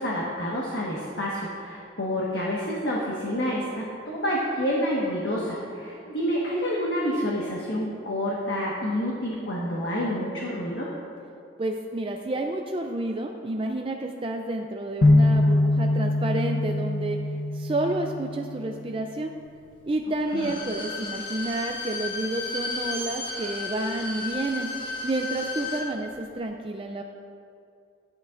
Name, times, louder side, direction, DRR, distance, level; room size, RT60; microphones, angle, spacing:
voice 1, 0.0-10.9 20.3-20.5, equal, 65° left, -4 dB, 1.4 m, -28 dB
voice 2, 11.6-17.2 17.5-19.3 19.9-24.7 25.0-27.0, right 2 dB, 30° right, 3 dB, 0.4 m, -30 dB
sound 1, 15.0-19.0, left 1 dB, 85° left, 0.9 m, -23 dB
Bowed string instrument, 20.2-25.9 26.2-26.3, left 3 dB, 25° left, 1.6 m, -33 dB
14.5 x 11.0 x 2.5 m, 2.5 s
head